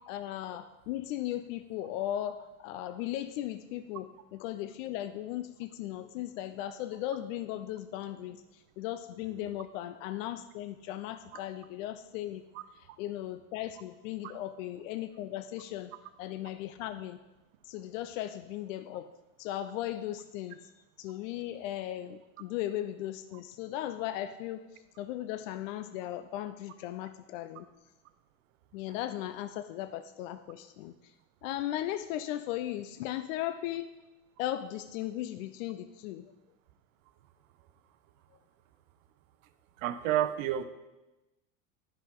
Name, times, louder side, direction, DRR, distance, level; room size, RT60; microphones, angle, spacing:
voice 1, 0.1-12.4 13.0-15.9 16.2-17.2 17.7-19.1 19.4-20.7 21.0-27.7 28.7-31.1 31.4-33.9 34.4-36.3, left 13 dB, 65° left, 10 dB, 0.5 m, -37 dB
voice 2, 39.8-40.6, right 12 dB, 65° right, 11 dB, 0.7 m, -29 dB
10.0 x 5.5 x 3.6 m, 1.1 s
hypercardioid pair, 105°, 43 cm